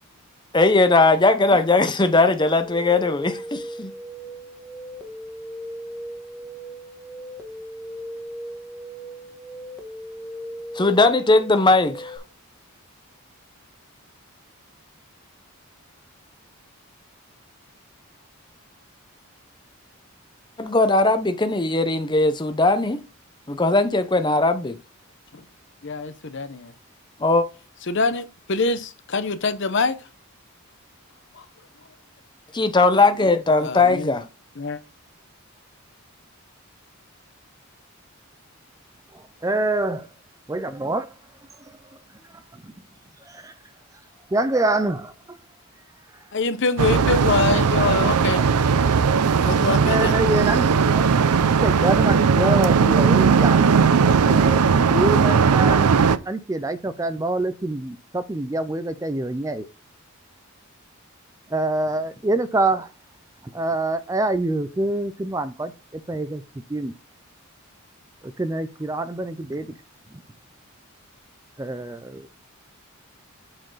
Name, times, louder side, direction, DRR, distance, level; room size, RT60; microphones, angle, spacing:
voice 1, 0.5-3.9 10.7-12.2 20.6-23.0 23.5-24.8 27.2-27.5 32.5-34.3, left 3 dB, 20° left, 0.7 m, -19 dB
sound 1, 2.6-12.2, equal, ahead, 1.3 m, -37 dB
voice 2, 25.8-26.7 27.9-30.0 31.3-31.4 33.6-34.2 34.6-34.8 46.3-48.4 49.5-50.1, left 4 dB, 55° left, 0.7 m, -24 dB
voice 3, 39.1-40.1 40.5-41.1 41.6-41.8 42.2-42.7 43.2-43.5 44.3-45.4 46.1-46.2 49.8-51.1 51.4-53.7 54.2-59.7 61.5-62.9 63.5-66.4 66.7-66.9 68.2-69.7 71.6-72.3, right 2 dB, 15° right, 0.4 m, -26 dB
sound 2, 46.8-56.2, right 5 dB, 90° right, 0.5 m, -18 dB
7.6 x 4.5 x 3.9 m
head